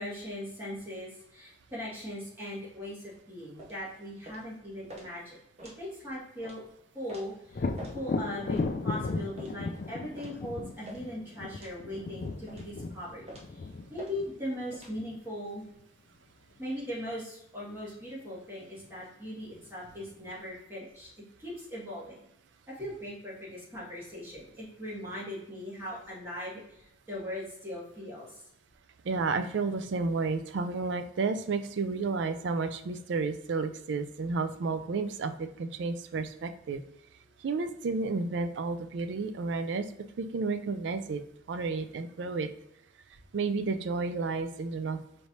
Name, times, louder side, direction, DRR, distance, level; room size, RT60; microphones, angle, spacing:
voice 1, 0.0-5.4 5.8-6.7 6.9-8.6 8.8-13.2 13.5-15.6 16.6-21.1 21.4-22.2 22.7-28.4, left 1 dB, 10° right, -7 dB, 1.6 m, -39 dB
sound 1, 3.6-3.8 4.2-4.5 4.9-5.1 5.6-5.8 6.4-6.6 7.1-7.3 7.8-8.0 8.5-8.7 9.4-9.6 10.2-10.4 10.8-11.1 11.6-11.8 12.5-12.7 13.3-13.5 14.0-14.1 14.7-14.9, right 1 dB, 35° right, 0.7 m, -47 dB
Thunder, 7.5-15.2 18.8-18.9 19.4-20.3, left 3 dB, 45° left, 0.3 m, -36 dB
voice 2, 29.1-36.8 37.4-39.9 40.2-41.2 41.5-42.5 43.3-45.0, right 4 dB, 70° right, 9 dB, 0.4 m, -31 dB
4.5 x 3.3 x 2.7 m, 0.78 s
head